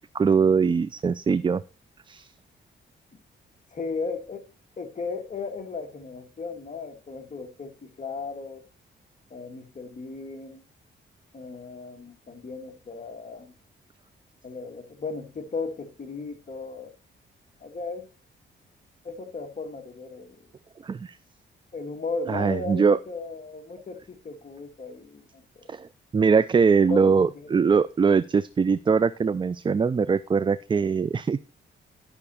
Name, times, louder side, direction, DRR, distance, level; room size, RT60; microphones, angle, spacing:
voice 1, 0.1-1.6 2.1-2.3 20.8-21.2 22.3-23.0 25.7-25.9 26.1-31.5, right 5 dB, 25° right, 0.4 m, -22 dB
voice 2, 3.7-4.4 4.8-8.6 9.3-10.6 11.3-13.5 14.4-16.9 17.6-18.0 19.0-20.4 21.7-25.6 26.9-27.7, left 4 dB, 40° left, 1.8 m, -36 dB
11.0 x 5.9 x 4.2 m
cardioid pair, 105°, 20 cm